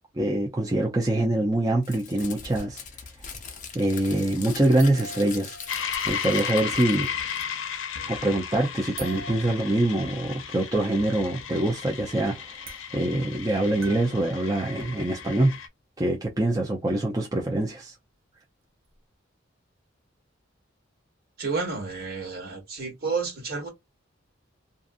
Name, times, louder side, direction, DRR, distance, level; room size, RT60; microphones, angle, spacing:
voice 1, 0.1-2.8 3.7-7.1 8.1-15.5 16.0-17.9, right 1 dB, 20° right, 0.5 m, -25 dB
Crumpling crinkling, 1.8-7.8, left 6 dB, 40° left, 0.6 m, -41 dB
sound 1, 4.8-6.3 8.9-9.8 11.5-11.6 11.8-11.9 12.5-12.8 13.8-14.2 14.8-14.9 18.8-18.9, right 2 dB, 80° right, 0.7 m, -42 dB
sound 2, 5.7-15.7, left 7 dB, 80° left, 0.6 m, -34 dB
voice 2, 21.4-23.7, right 4 dB, 50° right, 1.5 m, -30 dB
2.5 x 2.5 x 2.4 m
head